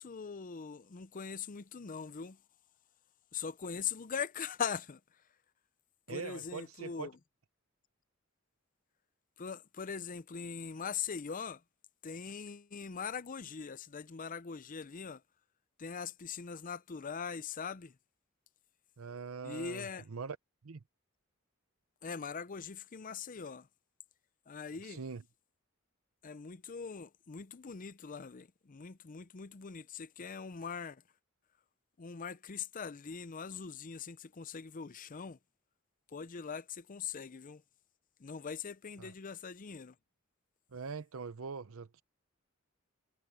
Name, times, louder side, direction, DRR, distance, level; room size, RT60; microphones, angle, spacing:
voice 1, 0.0-2.4 3.3-5.0 6.1-7.2 9.4-11.6 12.0-15.2 15.8-18.0 19.4-20.0 22.0-23.7 24.5-25.0 26.2-31.0 32.0-35.4 36.1-37.6 38.2-39.9, left 6 dB, 40° left, 0.6 m, -41 dB
voice 2, 6.1-7.1 19.0-20.4 20.6-20.8 24.9-25.2 39.0-39.1 40.7-42.0, right 5 dB, 90° right, 0.7 m, -42 dB
head